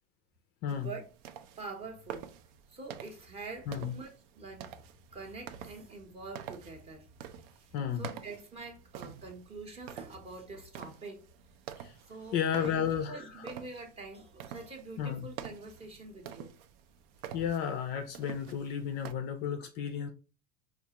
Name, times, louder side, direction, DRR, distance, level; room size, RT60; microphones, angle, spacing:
voice 1, 0.7-1.1 1.6-2.3 2.7-4.7 5.1-7.1 7.6-11.2 12.1-16.5, right 3 dB, 20° right, 0.7 m, -45 dB
sound 1, 0.7-19.1, right 9 dB, 85° right, 0.5 m, -48 dB
voice 2, 7.7-8.1 11.8-12.0 12.3-13.5 15.0-15.3 17.3-20.1, left 8 dB, 35° left, 0.4 m, -33 dB
4.6 x 2.4 x 2.8 m
cardioid pair, 165°, 30 cm